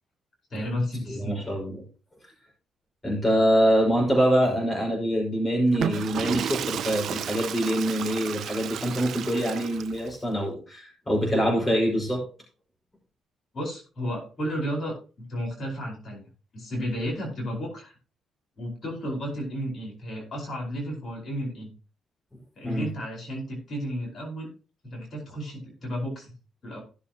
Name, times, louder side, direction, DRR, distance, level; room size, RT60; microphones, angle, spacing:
voice 1, 0.5-1.4 13.5-16.3 16.5-17.9 18.6-21.7 22.6-24.5 24.8-26.3 26.6-26.8, equal, 50° left, -1 dB, 4.9 m, -32 dB
voice 2, 1.1-1.8 3.0-12.3 22.6-22.9, equal, 20° left, -1 dB, 5.1 m, -24 dB
Water / Toilet flush, 5.6-10.2, right 9 dB, 65° right, 0.5 m, -33 dB
16.0 x 7.0 x 2.9 m, 0.35 s
cardioid pair, 90°, 0 cm